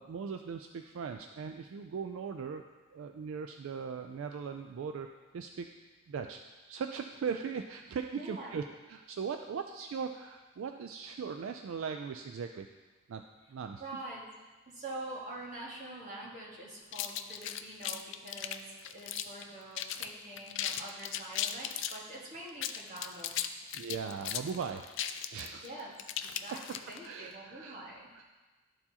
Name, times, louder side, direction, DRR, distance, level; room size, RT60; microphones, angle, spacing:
voice 1, 0.0-2.6 2.9-5.1 5.3-5.7 6.1-6.4 6.7-8.6 8.9-12.7 13.1-13.2 13.5-13.8 23.7-25.8 26.3-26.4 27.0-27.8 28.1-28.3, right 6 dB, 65° right, 6 dB, 0.3 m, -39 dB
voice 2, 8.1-8.6 13.8-14.2 14.7-23.4 25.6-25.9 26.2-26.6 26.9-28.1, right 1 dB, 35° right, -5 dB, 1.6 m, -45 dB
sound 1, 16.9-19.4 19.7-20.1 20.4-22.0 22.5-27.1, left 10 dB, 60° left, 0.3 m, -37 dB
12.0 x 4.5 x 2.8 m, 1.3 s
head